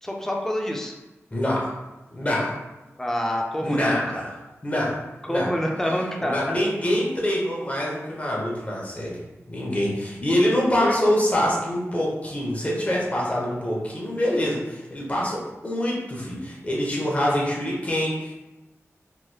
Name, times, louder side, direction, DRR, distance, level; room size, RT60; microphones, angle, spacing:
voice 1, 0.0-1.0 3.0-4.2 5.2-6.6 10.8-11.0, equal, 10° left, 0 dB, 0.5 m, -27 dB
voice 2, 1.3-1.8 2.1-2.5 3.6-5.0 5.3-5.5 6.2-9.1 9.5-18.4, left 1 dB, 30° left, -4 dB, 0.8 m, -25 dB
3.1 x 2.9 x 2.2 m, 1.0 s
wide cardioid pair, 85°, 5 cm